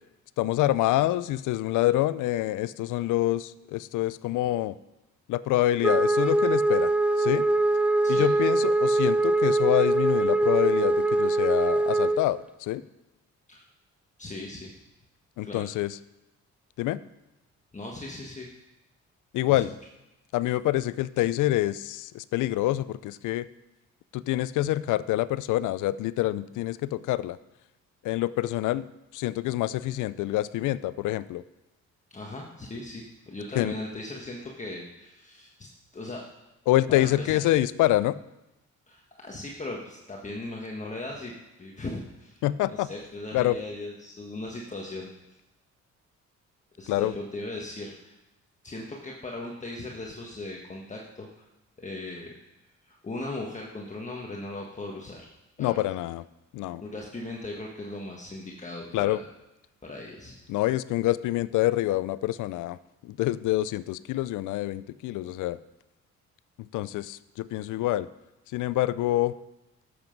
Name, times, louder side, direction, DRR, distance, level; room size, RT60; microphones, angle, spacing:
voice 1, 0.4-4.8 5.3-6.9 7.2-7.5 8.1-12.8 15.4-16.0 16.8-17.0 19.3-19.7 20.3-23.5 24.1-27.4 28.0-28.8 29.1-31.4 33.5-33.7 36.7-38.2 42.4-42.9 43.3-43.6 46.9-47.1 55.6-56.2 56.5-56.8 58.9-59.2 60.5-62.8 63.0-65.6 66.6-68.1 68.5-69.3, left 15 dB, 85° left, 17 dB, 0.5 m, -26 dB
Wind instrument woodwind instrument, 5.8-12.2, right 2 dB, 5° right, 0.5 m, -23 dB
voice 2, 14.2-14.7 15.4-15.7 17.7-18.5 19.5-19.6 32.1-35.7 35.9-36.2 36.9-37.4 38.9-41.3 41.6-42.4 42.7-45.1 46.8-48.2 48.6-51.5 51.8-52.3 52.8-55.3 55.6-55.8 56.8-59.2 59.8-60.4, left 2 dB, 25° left, -1 dB, 1.5 m, -38 dB
12.0 x 7.9 x 5.2 m, 0.97 s
cardioid pair, 90°, 30 cm